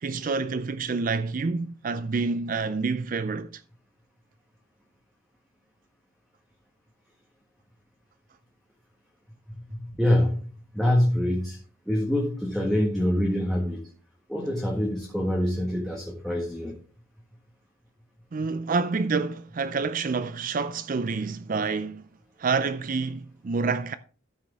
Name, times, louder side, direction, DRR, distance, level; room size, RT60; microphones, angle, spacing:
voice 1, 0.0-3.6 18.3-22.0 22.4-23.9, right 4 dB, 40° right, 0.4 m, -28 dB
voice 2, 9.8-10.4 10.7-11.6 11.9-13.8 14.3-16.7, left 1 dB, ahead, 1.6 m, -25 dB
13.5 x 6.4 x 3.5 m
head